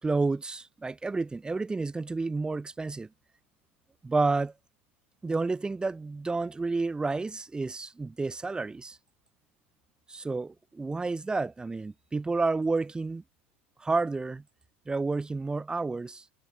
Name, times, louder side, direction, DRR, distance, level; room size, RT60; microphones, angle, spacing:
voice 1, 0.0-3.1 4.0-4.5 5.2-9.0 10.1-13.2 13.8-14.4 14.9-16.2, right 3 dB, 10° right, 7.2 m, -30 dB
open air
figure-of-eight pair, 85°, 7 cm